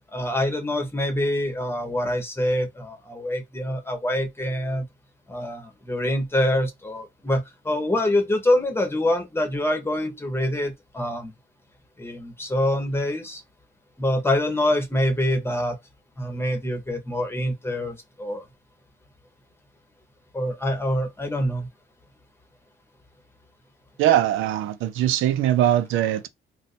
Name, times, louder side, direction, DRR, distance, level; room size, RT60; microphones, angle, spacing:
voice 1, 0.1-4.9 5.3-11.3 12.0-13.4 14.0-15.8 16.2-18.4 20.3-21.7, left 1 dB, 10° left, 1.0 m, -25 dB
voice 2, 24.0-26.3, right 12 dB, 85° right, 0.5 m, -21 dB
2.6 x 2.3 x 4.0 m
cardioid pair, 90°, 20 cm